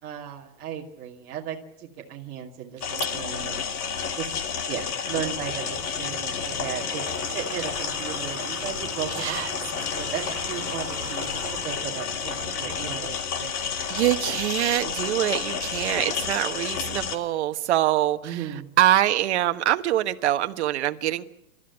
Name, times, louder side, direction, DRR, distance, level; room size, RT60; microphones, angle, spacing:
voice 1, 0.0-3.7 4.1-4.3 4.7-9.4 9.9-13.6 18.2-18.7, right 9 dB, 25° right, -4 dB, 2.7 m, -36 dB
sound 1, 2.8-17.2, left 6 dB, 90° left, 2.9 m, -30 dB
Water / Water tap faucet, 5.1-13.1, right 4 dB, 5° right, 5.8 m, -43 dB
voice 2, 9.1-9.5 13.9-18.5 18.8-21.2, right 13 dB, 50° right, 8 dB, 1.3 m, -24 dB
29.5 x 13.5 x 9.7 m, 0.82 s
supercardioid pair, 170°, 44 cm